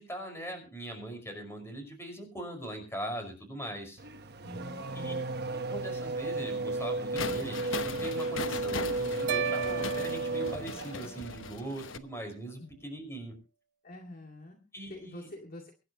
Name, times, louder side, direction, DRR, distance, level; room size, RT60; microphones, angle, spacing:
voice 1, 0.0-4.0 4.9-5.1 5.5-13.3 14.7-15.3, right 1 dB, 15° left, 5 dB, 5.5 m, -41 dB
Race car auto racing / Accelerating revving vroom, 4.0-11.2, right 2 dB, 55° right, 1.3 m, -34 dB
voice 2, 4.4-5.5 12.6-12.7 13.8-14.6 14.9-15.7, left 1 dB, 45° left, 2 dB, 2.3 m, -46 dB
sound 1, 7.1-12.0, left 4 dB, 80° left, 0.9 m, -39 dB
sound 2, 9.3-11.6, right 7 dB, 75° right, 1.2 m, -36 dB
24.0 x 11.0 x 3.0 m, 0.31 s
head